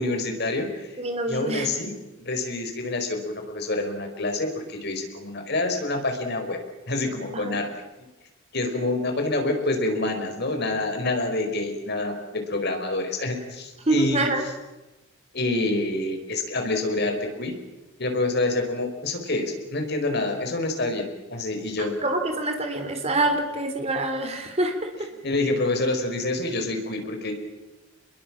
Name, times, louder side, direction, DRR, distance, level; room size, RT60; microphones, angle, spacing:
voice 1, 0.0-0.9 1.3-1.9 2.2-6.6 6.9-7.7 8.5-14.3 15.3-17.5 18.0-21.9 25.2-27.3, left 2 dB, 55° left, 4 dB, 4.8 m, -27 dB
voice 2, 1.0-1.8 7.3-7.6 13.9-14.4 21.8-25.1, right 2 dB, 30° right, 5 dB, 3.6 m, -26 dB
27.5 x 22.0 x 7.5 m, 1.1 s
head